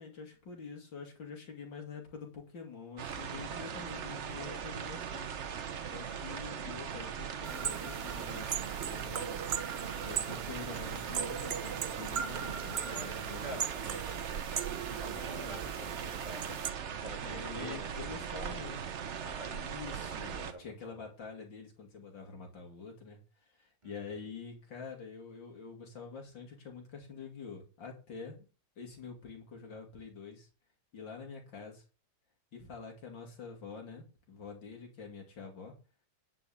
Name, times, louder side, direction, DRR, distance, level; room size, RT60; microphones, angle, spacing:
voice 1, 0.0-5.3 5.9-9.4 10.0-13.6 14.7-15.7 17.2-18.8 19.5-23.2 23.6-28.4 28.8-30.5 30.9-31.8 32.5-35.7, left 5 dB, 80° left, 3.2 m, -46 dB
sound 1, 3.0-20.5, right 7 dB, 50° right, 0.9 m, -40 dB
sound 2, 7.4-16.7, right 8 dB, 85° right, 0.5 m, -39 dB
voice 2, 12.8-16.7 17.0-21.1 23.8-24.1, right 1 dB, 20° right, 3.0 m, -48 dB
10.5 x 5.4 x 7.0 m
omnidirectional pair, 2.0 m